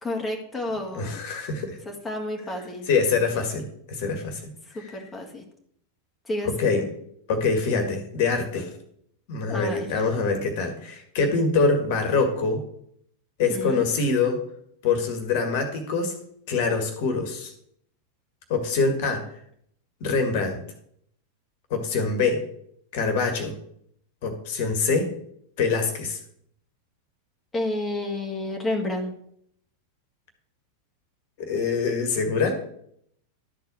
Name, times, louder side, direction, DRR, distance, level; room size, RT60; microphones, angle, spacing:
voice 1, 0.0-1.2 1.9-2.9 4.7-5.4 6.3-6.8 9.5-9.9 13.5-13.8 27.5-29.1, left 1 dB, 10° left, 1 dB, 2.0 m, -30 dB
voice 2, 0.9-1.8 2.9-5.0 6.6-6.9 7.3-8.7 9.3-12.6 13.4-14.4 14.8-16.1 16.5-17.5 18.5-19.2 20.0-20.6 21.7-22.4 22.9-23.5 24.2-25.1 25.6-26.2 31.4-32.5, left 4 dB, 50° left, 6 dB, 1.9 m, -24 dB
12.0 x 4.7 x 7.0 m, 0.69 s
figure-of-eight pair, 90°, 0 cm